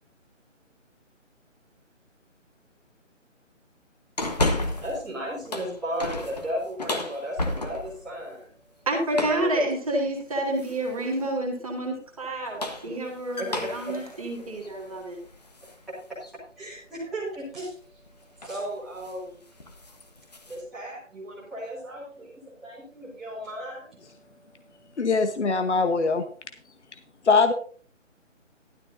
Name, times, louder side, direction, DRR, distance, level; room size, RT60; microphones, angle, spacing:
sound 1, 4.2-5.0 5.4-8.0 9.1-9.5 10.6-11.0 12.3-15.8 16.2-16.3 17.9-18.1 18.4-18.7 19.0-19.2 19.6-20.6, left 2 dB, 30° left, 1.2 m, -32 dB
voice 1, 4.2-8.5 9.3-9.7 12.8-13.0 13.4-13.9 15.9-18.0 18.3-19.4 20.5-25.0, equal, ahead, -13 dB, 1.9 m, -36 dB
voice 2, 8.9-15.2, right 1 dB, 25° right, -1 dB, 2.2 m, -29 dB
voice 3, 25.0-26.2 27.2-27.5, left 4 dB, 60° left, 8 dB, 1.2 m, -21 dB
13.5 x 12.5 x 2.6 m, 0.43 s
hypercardioid pair, 175°, 38 cm